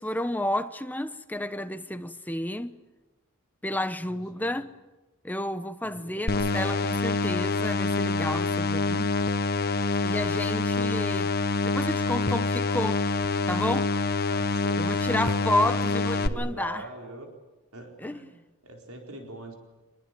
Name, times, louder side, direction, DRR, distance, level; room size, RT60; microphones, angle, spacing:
voice 1, 0.0-2.8 3.6-4.7 5.2-9.1 10.0-11.3 11.6-13.0 13.5-13.9 14.8-16.8 18.0-18.2, left 1 dB, 10° left, 0.9 m, -31 dB
voice 2, 4.0-4.7 5.8-6.2 14.3-17.3 17.7-19.6, right 1 dB, 80° right, 4.4 m, -44 dB
sound 1, 6.3-16.3, left 3 dB, 45° left, 1.1 m, -26 dB
25.5 x 21.5 x 9.3 m
head